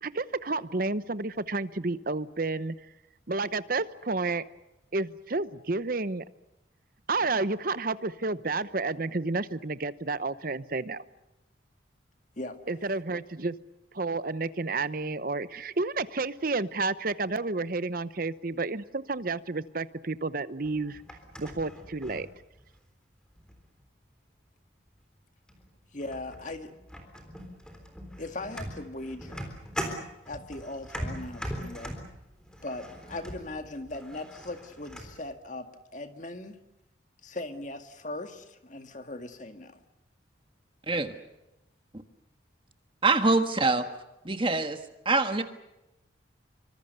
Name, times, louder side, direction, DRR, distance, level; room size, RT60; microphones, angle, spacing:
voice 1, 0.0-2.7 3.3-4.4 4.9-6.2 7.1-11.0 12.7-13.6 13.9-21.0 21.4-22.3, right 3 dB, 45° right, 15 dB, 0.9 m, -30 dB
sound 1, 20.6-22.9 23.4-23.8 24.9-25.0 25.5-25.7 26.0-35.2, equal, 5° left, 3.6 m, -41 dB
voice 2, 25.9-26.7 28.2-29.6 30.3-31.9 32.6-36.6 37.2-39.8, left 2 dB, 40° left, 7 dB, 1.9 m, -39 dB
voice 3, 43.0-43.9 44.2-45.4, right 3 dB, 25° right, 8 dB, 1.5 m, -25 dB
26.0 x 25.0 x 6.8 m, 0.92 s
head